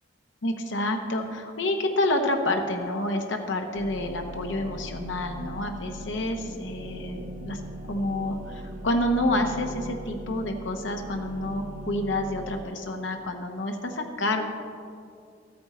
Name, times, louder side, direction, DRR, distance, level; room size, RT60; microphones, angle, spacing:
voice 1, 0.4-7.6 7.9-14.4, left 1 dB, 70° left, 4 dB, 0.9 m, -28 dB
sound 1, 3.7-12.6, right 1 dB, 45° right, 0.9 m, -39 dB
13.0 x 8.7 x 4.2 m, 2.3 s
head